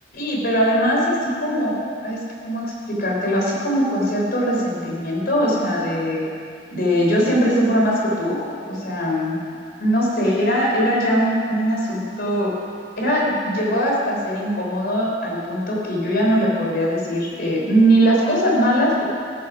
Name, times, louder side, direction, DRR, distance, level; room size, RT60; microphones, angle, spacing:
voice 1, 0.1-6.2 6.7-8.4 8.7-9.4 9.8-12.5 13.0-19.0, equal, 55° left, -2 dB, 3.5 m, -21 dB
15.0 x 9.8 x 6.0 m, 2.3 s
head